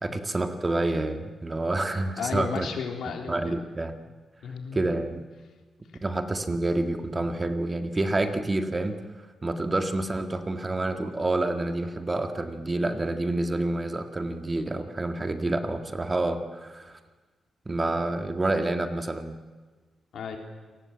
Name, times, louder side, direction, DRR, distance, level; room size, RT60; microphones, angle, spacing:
voice 1, 0.0-2.7 3.3-4.0 4.7-5.2 6.0-9.0 9.4-17.0 17.7-19.4, right 2 dB, 20° right, 7 dB, 1.9 m, -28 dB
voice 2, 2.2-3.5 4.4-4.9 20.1-20.4, left 6 dB, 75° left, 3 dB, 3.8 m, -33 dB
28.5 x 19.0 x 8.6 m, 1.3 s
cardioid pair, 105°, 0 cm